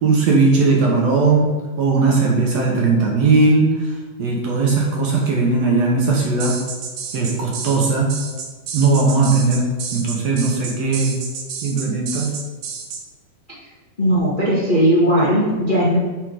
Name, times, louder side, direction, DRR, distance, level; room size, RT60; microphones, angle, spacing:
voice 1, 0.0-1.5 1.8-3.7 4.2-6.6 7.1-8.1 8.7-9.6 9.9-11.2 11.6-12.3, right 3 dB, 65° right, -2 dB, 1.9 m, -18 dB
sound 1, 6.4-13.0, right 6 dB, 80° right, 1.4 m, -30 dB
voice 2, 14.0-16.0, equal, 85° left, -8 dB, 0.4 m, -17 dB
9.4 x 3.8 x 5.0 m, 1.3 s
omnidirectional pair, 4.0 m